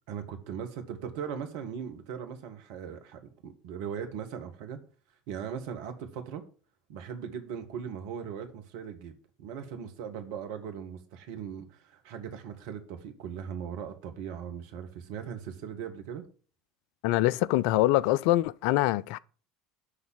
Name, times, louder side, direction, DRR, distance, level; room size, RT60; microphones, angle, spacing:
voice 1, 0.1-4.8 5.3-6.4 6.9-9.1 9.4-16.2, right 7 dB, 65° right, 1.7 m, -39 dB
voice 2, 17.0-19.2, left 16 dB, 65° left, 0.4 m, -24 dB
11.5 x 4.1 x 7.5 m
hypercardioid pair, 70°, 0 cm